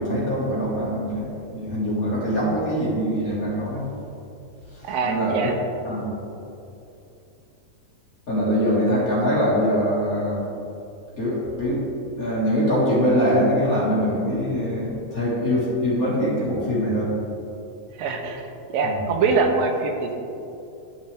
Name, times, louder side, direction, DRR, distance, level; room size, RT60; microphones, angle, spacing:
voice 1, 0.0-3.9 4.7-5.6 5.8-6.1 8.3-10.5 11.1-11.8 12.2-17.1 18.8-19.0, equal, 35° left, -8 dB, 1.4 m, -23 dB
voice 2, 4.8-5.5 18.0-18.5 18.7-20.1, right 4 dB, 75° right, 3 dB, 2.3 m, -23 dB
12.0 x 6.3 x 3.5 m, 2.7 s
omnidirectional pair, 4.3 m